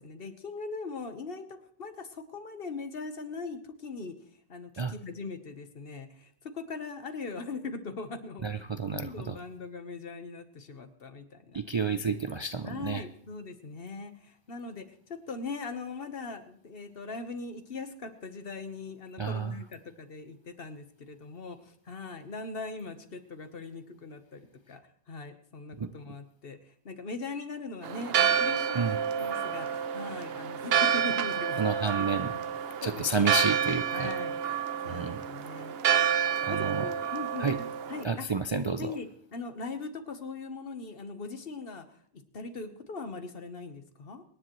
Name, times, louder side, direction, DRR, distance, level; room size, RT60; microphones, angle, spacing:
voice 1, 0.0-4.1 4.5-8.4 8.8-11.6 12.6-24.4 24.7-24.8 25.1-31.6 32.0-32.4 32.8-33.3 33.9-34.4 34.8-35.8 36.5-38.2 38.8-44.2, left 4 dB, 60° left, 8 dB, 1.4 m, -40 dB
voice 2, 8.4-9.4 11.5-13.0 19.2-19.5 25.8-26.1 28.7-29.0 31.6-32.3 32.8-34.1 34.9-35.3 36.4-36.9 37.4-37.6 38.0-39.0, right 4 dB, 40° right, 8 dB, 0.4 m, -30 dB
Church bell, 27.8-38.0, right 8 dB, 70° right, 0.9 m, -29 dB
25.0 x 10.0 x 3.1 m, 0.62 s
omnidirectional pair, 1.1 m